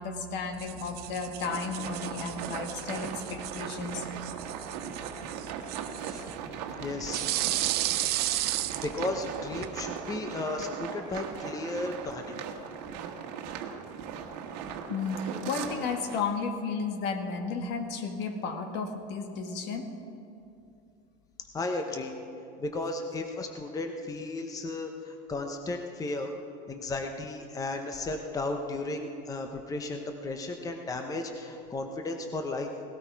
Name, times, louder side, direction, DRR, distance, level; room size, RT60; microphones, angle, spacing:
voice 1, 0.0-4.1 7.3-7.4 14.9-19.9, left 5 dB, 55° left, 6 dB, 1.5 m, -33 dB
Brushing Teeth (short), 0.5-9.7, right 15 dB, 50° right, 0.6 m, -35 dB
sound 1, 1.4-16.2, right 7 dB, 80° right, 1.4 m, -39 dB
voice 2, 6.8-7.2 8.8-12.3 21.5-22.1 22.6-26.3 26.7-32.7, left 2 dB, 15° left, 5 dB, 0.9 m, -34 dB
17.5 x 13.0 x 4.7 m, 2.6 s
supercardioid pair, 125°, 21 cm